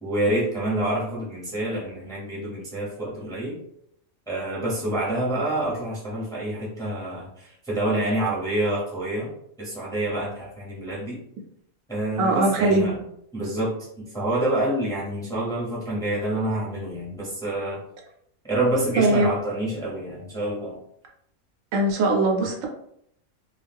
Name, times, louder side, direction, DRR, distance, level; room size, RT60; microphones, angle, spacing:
voice 1, 0.0-3.6 4.3-9.3 9.6-11.2 11.9-13.0 13.3-17.8 18.5-20.8, right 1 dB, 5° left, -6 dB, 0.7 m, -27 dB
voice 2, 12.2-12.9 19.0-19.3 21.7-22.7, right 2 dB, 75° right, 1 dB, 0.9 m, -21 dB
2.3 x 2.3 x 3.4 m, 0.72 s
omnidirectional pair, 1.4 m